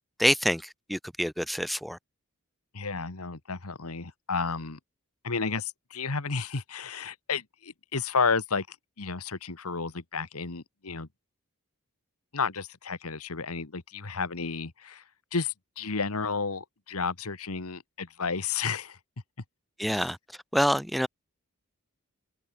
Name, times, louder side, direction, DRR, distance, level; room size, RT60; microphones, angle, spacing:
voice 1, 0.2-2.0 19.8-20.2 20.5-21.1, equal, ahead, 0.4 m, -26 dB
voice 2, 2.7-4.8 5.2-8.7 9.0-11.1 12.3-15.0 15.3-19.0 19.9-20.0, left 5 dB, 85° left, 1.6 m, -32 dB
head